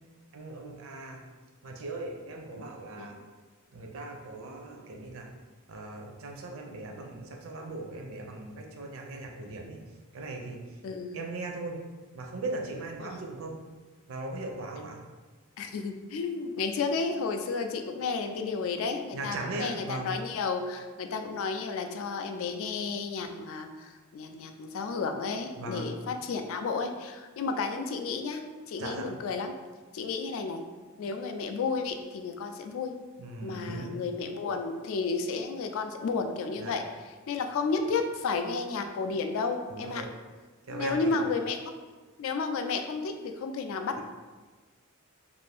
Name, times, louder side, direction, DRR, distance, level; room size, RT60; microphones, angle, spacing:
voice 1, 0.3-1.2 1.6-3.2 3.7-5.3 5.7-9.8 10.1-10.6 11.1-11.8 12.1-13.6 14.1-15.0 19.1-20.1 25.6-25.8 28.8-29.1 33.2-34.0 36.6-36.7 39.7-40.1 40.7-41.2, right 2 dB, 65° right, 2 dB, 0.5 m, -38 dB
voice 2, 10.8-11.2 13.0-13.2 15.6-29.5 29.9-30.6 31.0-32.9 33.4-40.0 40.7-41.6 42.2-44.0, left 4 dB, 65° left, 6 dB, 0.3 m, -32 dB
2.6 x 2.5 x 3.3 m, 1.3 s
head